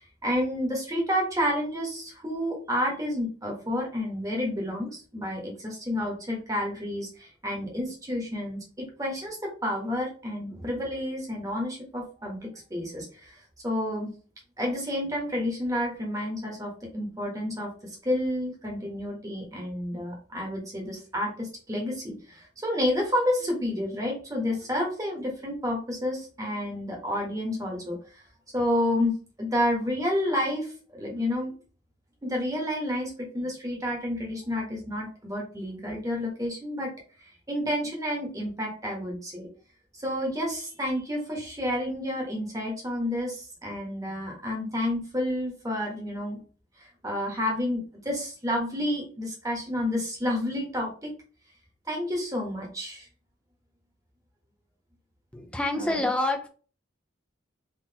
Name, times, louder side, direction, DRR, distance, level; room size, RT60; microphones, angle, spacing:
voice 1, 0.0-13.4 13.6-14.1 14.6-17.7 18.0-28.0 28.5-29.1 29.4-31.5 32.2-36.9 37.5-39.5 39.9-46.4 47.0-51.1 51.9-53.1 55.8-56.0, left 1 dB, 15° right, -1 dB, 1.2 m, -30 dB
voice 2, 55.3-56.5, left 2 dB, 5° left, 3 dB, 0.5 m, -27 dB
3.8 x 3.0 x 2.8 m, 0.39 s
head